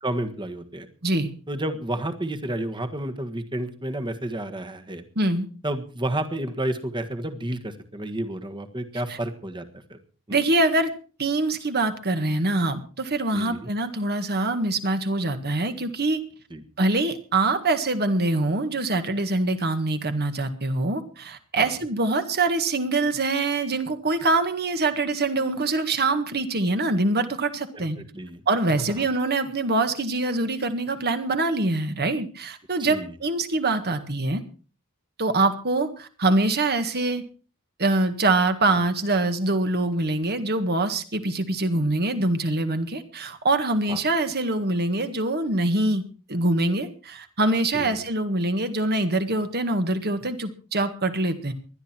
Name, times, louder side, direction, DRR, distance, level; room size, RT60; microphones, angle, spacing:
voice 1, 0.0-0.9 1.5-5.0 5.6-9.6 9.9-10.0 10.3-10.4 13.3-13.7 16.5-16.6 21.5-21.7 27.7-28.4 29.0-29.1 32.8-33.1 43.9-44.0 47.7-48.0, right 1 dB, 20° right, 8 dB, 1.6 m, -31 dB
voice 2, 5.1-5.5 9.1-9.2 10.3-10.9 11.2-16.2 16.8-28.0 28.5-34.4 35.2-37.2 37.8-46.0 46.3-51.5, right 2 dB, 45° right, 9 dB, 1.8 m, -24 dB
20.0 x 12.0 x 4.5 m, 0.38 s
head